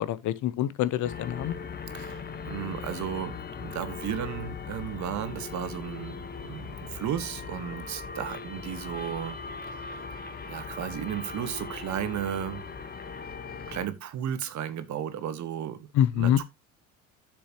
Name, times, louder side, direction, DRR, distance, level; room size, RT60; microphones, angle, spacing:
voice 1, 0.0-1.6 15.9-16.4, left 11 dB, 50° left, 0.8 m, -25 dB
sound 1, 1.0-13.9, left 5 dB, 25° left, 1.0 m, -39 dB
voice 2, 1.9-9.4 9.6-10.0 10.5-12.6 13.7-15.8 16.2-16.4, right 9 dB, 50° right, 1.3 m, -34 dB
9.6 x 6.8 x 2.8 m
supercardioid pair, 95°, 37 cm